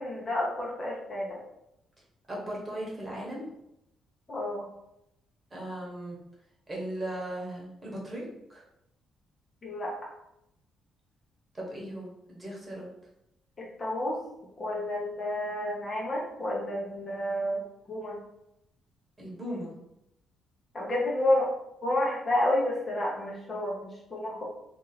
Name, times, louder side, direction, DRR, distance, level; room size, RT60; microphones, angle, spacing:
voice 1, 0.0-1.4 4.3-4.7 9.6-10.1 13.6-14.2 14.6-18.2 20.7-21.5 21.8-24.4, left 1 dB, 30° left, -3 dB, 1.0 m, -30 dB
voice 2, 2.3-3.5 5.5-6.2 6.7-8.2 8.5-8.6 11.5-12.9 19.2-19.7, right 1 dB, 25° right, -4 dB, 1.4 m, -37 dB
2.8 x 2.6 x 4.1 m, 0.83 s
cardioid pair, 90°, 0 cm